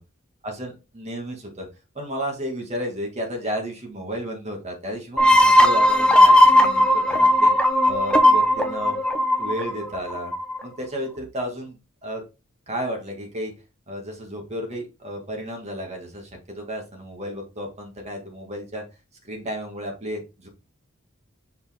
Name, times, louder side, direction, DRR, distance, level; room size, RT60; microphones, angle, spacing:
voice 1, 0.4-1.7 1.9-7.5 7.8-9.0 9.4-10.3 10.6-12.2 12.7-13.5 13.9-18.8 19.2-20.5, equal, 35° right, 1 dB, 2.1 m, -32 dB
sound 1, 5.2-10.6, left 1 dB, 5° left, 0.9 m, -17 dB
5.5 x 5.0 x 3.6 m, 0.29 s
head